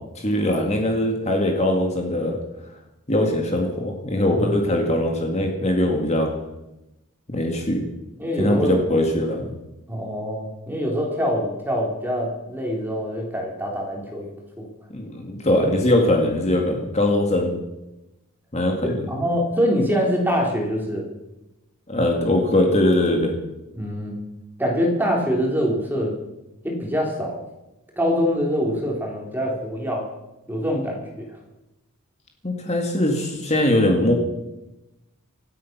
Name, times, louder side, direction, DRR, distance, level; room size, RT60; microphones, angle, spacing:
voice 1, 0.1-2.4 3.1-6.3 7.3-7.8 8.4-9.5 14.9-17.5 18.5-19.1 21.9-23.3 32.4-34.1, left 1 dB, 30° left, 2 dB, 2.0 m, -21 dB
voice 2, 8.2-8.7 9.9-14.7 18.8-21.1 23.7-24.2 24.6-26.1 26.6-27.4 28.0-30.1 30.5-31.3, equal, 10° right, -1 dB, 3.4 m, -24 dB
26.0 x 8.8 x 6.0 m, 0.97 s
head